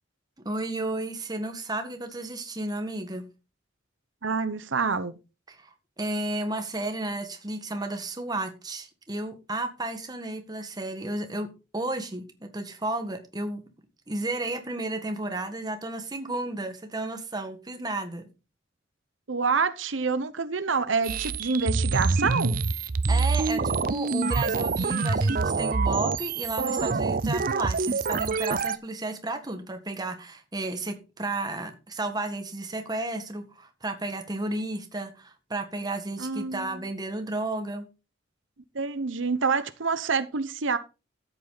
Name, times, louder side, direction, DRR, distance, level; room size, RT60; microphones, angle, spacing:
voice 1, 0.5-3.3 5.5-13.6 14.1-18.3 23.1-37.9, right 2 dB, 20° right, 1.8 m, -33 dB
voice 2, 4.2-5.1 19.3-22.6 36.2-36.8 38.7-40.8, right 4 dB, 85° right, 0.9 m, -27 dB
sound 1, 21.0-28.8, right 4 dB, 50° right, 0.6 m, -26 dB
13.5 x 8.2 x 4.0 m
head